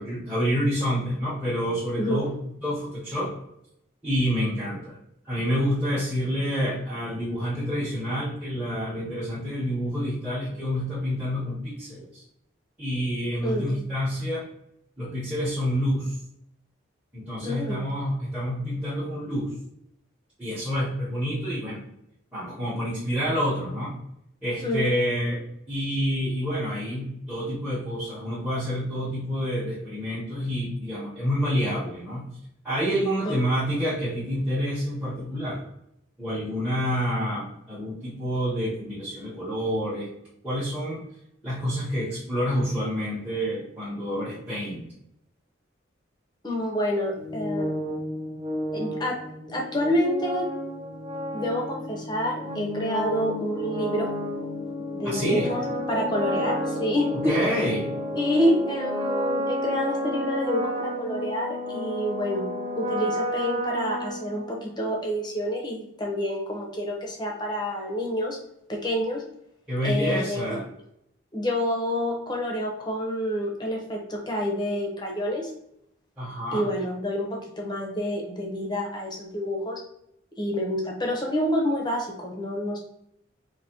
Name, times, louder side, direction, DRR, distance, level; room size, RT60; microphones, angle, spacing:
voice 1, 0.0-2.3 2.6-3.3 4.0-5.0 5.2-12.2 12.8-14.5 15.0-16.2 17.1-19.5 20.4-21.8 22.3-24.0 24.4-32.3 32.6-35.6 36.2-40.1 40.4-41.0 41.4-44.9 55.0-55.5 57.1-57.9 69.7-70.7 76.2-76.7, equal, 5° right, -11 dB, 1.0 m, -28 dB
voice 2, 13.4-13.8 17.4-17.8 24.6-24.9 33.2-33.4 46.4-47.7 48.7-49.2 49.5-50.5 51.3-54.1 54.9-57.3 58.1-68.4 68.7-69.2 69.8-70.5 71.3-75.5 76.5-77.3 77.6-79.8 80.4-82.8, equal, 20° left, -1 dB, 0.8 m, -28 dB
sound 1, 47.1-64.8, left 1 dB, 20° right, 0.7 m, -31 dB
4.1 x 2.8 x 2.9 m, 0.77 s
head